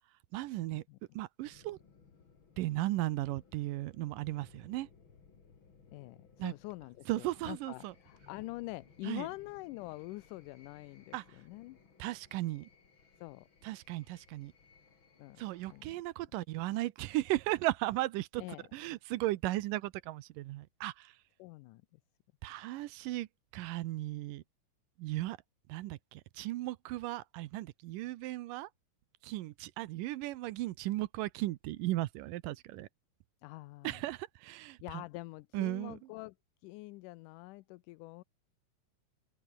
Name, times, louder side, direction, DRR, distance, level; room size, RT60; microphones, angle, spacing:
voice 1, 0.3-0.8 1.1-1.8 2.6-4.9 6.4-6.5 7.1-7.9 9.0-9.3 11.1-11.4 12.0-12.7 13.6-14.5 15.4-18.4 18.7-21.2 22.4-23.3 23.5-24.4 25.0-25.4 25.7-28.7 29.2-32.9 33.8-35.0 35.5-36.0, right 17 dB, 80° right, 2.4 m, -36 dB
sound 1, 1.4-15.8, left 5 dB, 40° left, 3.3 m, -62 dB
voice 2, 5.9-11.8 13.2-13.5 15.2-15.4 15.7-15.9 18.4-18.7 21.4-22.0 33.4-34.0 34.8-36.3 36.6-38.2, left 20 dB, 80° left, 2.1 m, -45 dB
open air
omnidirectional pair, 3.9 m